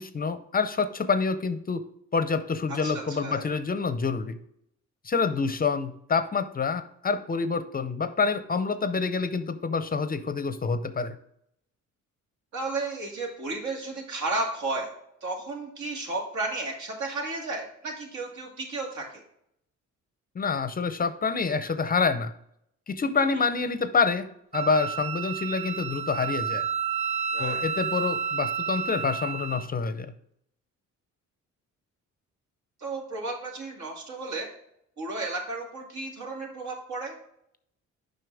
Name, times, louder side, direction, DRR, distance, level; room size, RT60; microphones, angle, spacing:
voice 1, 0.0-1.8 2.1-4.4 5.0-11.2 20.3-22.3 22.9-24.3 24.5-26.7 27.4-30.1, left 5 dB, 30° left, 11 dB, 0.6 m, -27 dB
voice 2, 2.7-3.5 12.5-14.9 15.2-19.2 23.2-23.3 27.3-27.7 32.8-34.5 35.0-37.2, right 3 dB, 65° right, 0 dB, 2.4 m, -33 dB
Wind instrument woodwind instrument, 24.5-29.7, right 7 dB, 20° right, 0.5 m, -31 dB
7.6 x 5.5 x 3.4 m, 0.73 s
cardioid pair, 90°, 30 cm